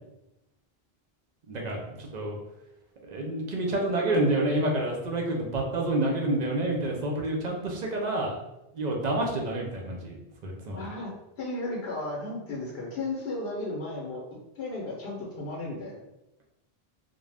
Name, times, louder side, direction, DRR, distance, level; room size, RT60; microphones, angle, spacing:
voice 1, 1.5-2.4 3.0-8.3 8.7-10.9, right 1 dB, 50° right, 0 dB, 0.6 m, -28 dB
voice 2, 10.8-11.1 11.4-14.2 14.5-16.0, left 2 dB, 80° left, -3 dB, 0.9 m, -34 dB
2.4 x 2.0 x 3.2 m, 0.95 s
omnidirectional pair, 1.0 m